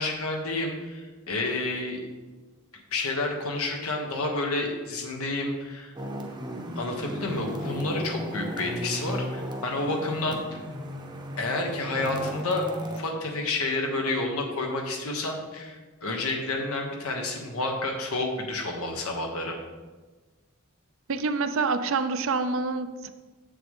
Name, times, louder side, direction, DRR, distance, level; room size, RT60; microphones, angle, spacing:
voice 1, 0.0-2.0 2.9-5.9 6.8-10.6 11.4-19.6, left 2 dB, 85° left, 2 dB, 1.3 m, -30 dB
sound 1, 6.0-13.0, equal, 20° right, 0.7 m, -35 dB
voice 2, 21.1-23.1, right 4 dB, 65° right, 10 dB, 0.5 m, -27 dB
7.6 x 6.9 x 3.7 m, 1.3 s
head